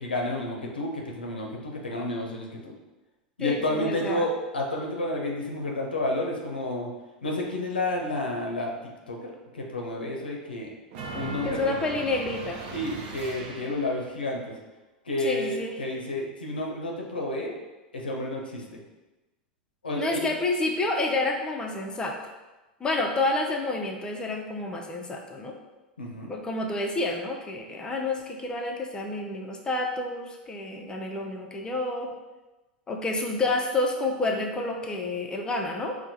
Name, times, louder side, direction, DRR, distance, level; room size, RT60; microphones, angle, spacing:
voice 1, 0.0-2.7 3.4-6.9 7.2-8.8 9.1-10.7 11.1-11.6 12.7-14.5 15.1-17.6 17.9-18.8 19.8-20.3 26.0-26.3, left 1 dB, 85° left, 0 dB, 0.6 m, -30 dB
voice 2, 3.4-4.3 11.4-12.6 15.2-15.7 19.9-22.2 22.8-25.6 26.3-32.1 32.9-36.0, left 2 dB, 15° left, 1 dB, 0.4 m, -29 dB
sound 1, 10.9-14.1, right 4 dB, 55° right, 0.6 m, -38 dB
4.4 x 2.1 x 2.7 m, 1.1 s
figure-of-eight pair, 90°, 5 cm